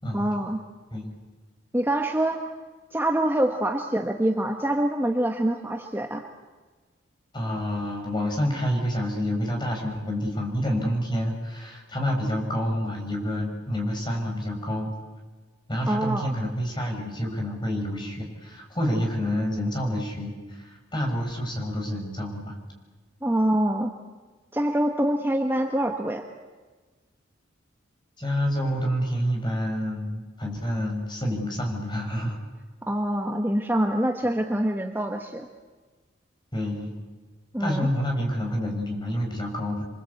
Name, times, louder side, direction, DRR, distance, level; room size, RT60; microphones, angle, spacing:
voice 1, 0.1-0.6 1.7-2.5 2.9-6.2 15.9-16.3 23.2-23.9 24.5-26.2 32.8-35.5 37.5-37.9, right 1 dB, 10° right, 3 dB, 1.3 m, -25 dB
voice 2, 7.3-14.9 15.7-22.6 28.2-32.4 36.5-36.9 37.6-39.8, equal, 25° left, 2 dB, 6.1 m, -28 dB
28.0 x 24.0 x 8.3 m, 1.3 s
head